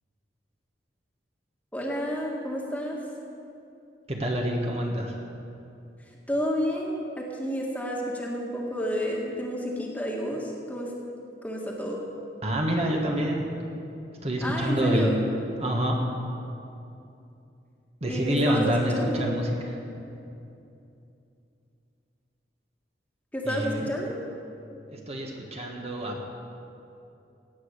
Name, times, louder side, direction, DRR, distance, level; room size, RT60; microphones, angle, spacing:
voice 1, 1.7-3.0 6.3-10.9 11.4-12.0 14.4-15.2 18.0-19.2 23.3-24.2, equal, 10° left, -2 dB, 1.8 m, -30 dB
voice 2, 4.1-5.1 12.4-13.4 14.2-15.2 15.6-15.9 18.0-19.5 23.4-23.8 25.1-26.2, equal, 35° right, 0 dB, 1.6 m, -26 dB
17.5 x 8.7 x 6.6 m, 2.7 s
head